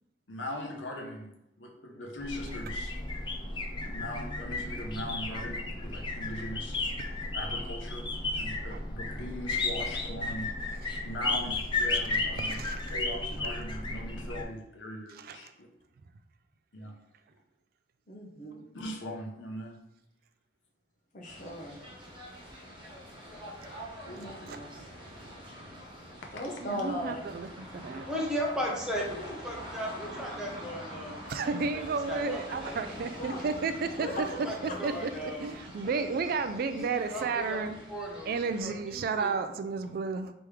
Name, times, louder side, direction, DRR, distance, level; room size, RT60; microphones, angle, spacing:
voice 1, 0.3-3.0 3.7-6.8 7.3-8.1 8.4-10.5 11.0-12.6 12.9-15.7 16.7-16.9 18.7-19.8 24.0-24.6 26.2-26.3, equal, 80° left, 1 dB, 0.8 m, -40 dB
sound 1, 2.2-14.4, left 2 dB, 25° left, 0.5 m, -34 dB
voice 2, 12.5-12.9 15.1-15.5 24.5-24.9 26.6-27.5 27.7-28.1 31.3-34.3 34.8-35.1 35.4-37.8 38.3-40.3, right 4 dB, 55° right, 10 dB, 0.3 m, -32 dB
voice 3, 18.1-18.7 21.1-21.8 24.2-24.7 26.3-27.2 32.9-33.6 34.0-35.1, equal, 45° left, 0 dB, 0.9 m, -38 dB
sound 2, 21.2-38.6, equal, 25° right, 1.1 m, -45 dB
voice 4, 27.9-32.8 34.0-36.1 36.3-37.6 37.9-38.3 38.6-39.3, equal, 5° right, -2 dB, 0.8 m, -37 dB
3.4 x 3.0 x 4.7 m, 0.84 s
head